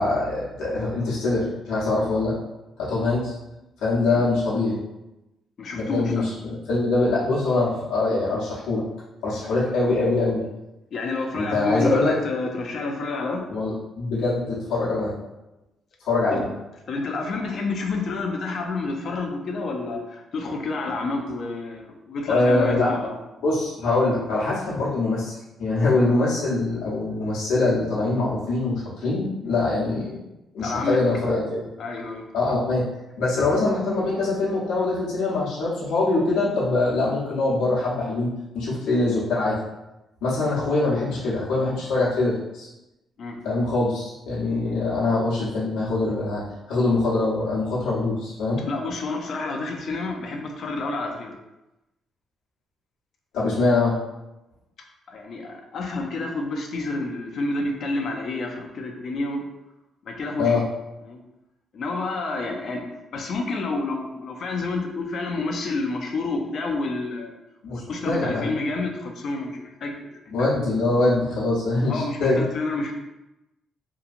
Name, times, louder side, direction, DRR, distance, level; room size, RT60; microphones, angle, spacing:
voice 1, 0.0-2.3 2.8-3.3 3.8-4.8 5.7-8.8 9.2-10.4 11.4-12.1 13.5-15.1 16.0-16.4 22.3-22.9 23.4-30.2 30.5-31.7 32.3-32.8 33.2-39.5 40.2-42.7 43.4-46.4 46.7-48.6 53.3-53.9 60.4-60.6 67.6-68.5 70.3-72.4, left 2 dB, 90° left, -8 dB, 0.8 m, -23 dB
voice 2, 5.6-6.3 10.9-13.4 16.3-16.4 16.9-23.2 30.6-31.0 31.8-32.3 43.2-43.4 48.7-51.3 55.1-59.4 60.0-60.6 61.0-61.2 61.7-62.9 63.1-67.3 67.7-69.9 70.4-70.5 71.8-72.9, left 3 dB, 60° left, 2 dB, 0.5 m, -29 dB
2.8 x 2.2 x 2.5 m, 0.97 s
cardioid pair, 90°, 0 cm